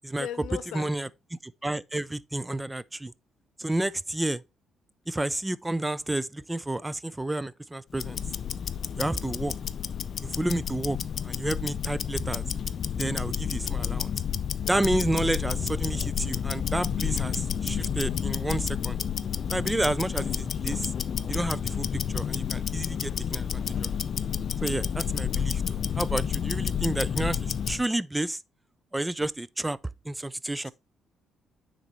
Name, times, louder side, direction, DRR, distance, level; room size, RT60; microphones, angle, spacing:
voice 1, 0.2-0.9 30.7-30.8, left 10 dB, 80° left, 0.8 m, -37 dB
voice 2, 0.7-1.1 1.4-3.1 3.6-4.4 5.1-8.2 9.0-9.6 10.2-11.0 11.2-12.4 13.0-14.1 14.6-19.0 19.5-20.9 21.3-23.9 24.6-28.4 28.9-29.8 30.1-30.7, right 1 dB, 10° right, 0.4 m, -30 dB
Tick-tock, 7.9-27.9, left 8 dB, 55° left, 0.4 m, -30 dB
9.4 x 3.9 x 2.9 m
cardioid pair, 90°, 0 cm